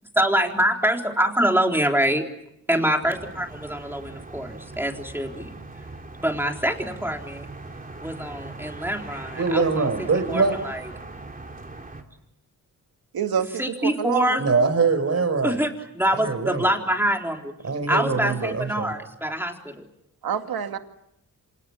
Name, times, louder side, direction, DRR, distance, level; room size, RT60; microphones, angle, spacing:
voice 1, 0.2-2.2 2.7-5.6 6.2-7.5 8.0-9.9 10.3-10.9 13.6-14.4 15.4-17.5 17.9-19.9, equal, 5° right, 2 dB, 3.9 m, -25 dB
sound 1, 3.0-12.0, right 2 dB, 25° right, 3.4 m, -40 dB
voice 2, 9.4-10.6 14.4-15.6 16.1-16.7 17.6-18.9, right 4 dB, 45° right, 10 dB, 5.2 m, -23 dB
voice 3, 13.1-14.7 20.2-20.8, right 8 dB, 75° right, 6 dB, 2.3 m, -28 dB
28.0 x 27.5 x 7.4 m, 0.78 s
cardioid pair, 95°, 36 cm